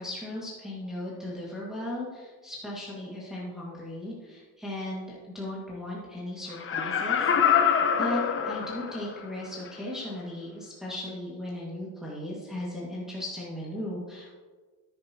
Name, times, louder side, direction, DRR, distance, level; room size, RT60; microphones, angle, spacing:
voice 1, 0.0-5.1 5.3-7.7 8.0-14.3, left 1 dB, ahead, -7 dB, 1.8 m, -37 dB
Laughter, 6.5-9.2 9.7-9.8, left 7 dB, 30° left, 0.9 m, -25 dB
10.5 x 9.8 x 2.9 m, 1.4 s
cardioid pair, 130°, 41 cm